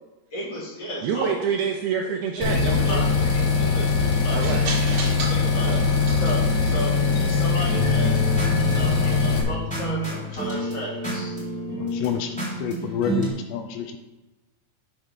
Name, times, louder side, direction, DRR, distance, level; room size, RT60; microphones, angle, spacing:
voice 1, 0.3-1.4 2.4-5.8 6.2-8.2 8.7-11.4, equal, 35° left, -7 dB, 3.6 m, -34 dB
voice 2, 1.0-3.0 4.3-4.7 5.6-5.8, right 6 dB, 75° right, 0 dB, 2.4 m, -27 dB
sound 1, 2.4-9.4, left 4 dB, 55° left, 2.1 m, -21 dB
sound 2, 2.4-9.7, right 3 dB, 50° right, 2.2 m, -38 dB
sound 3, 7.6-13.3, equal, ahead, 2.4 m, -29 dB
voice 3, 11.8-14.0, left 8 dB, 80° left, 6 dB, 2.8 m, -29 dB
7.7 x 6.7 x 6.0 m, 1.1 s
omnidirectional pair, 5.1 m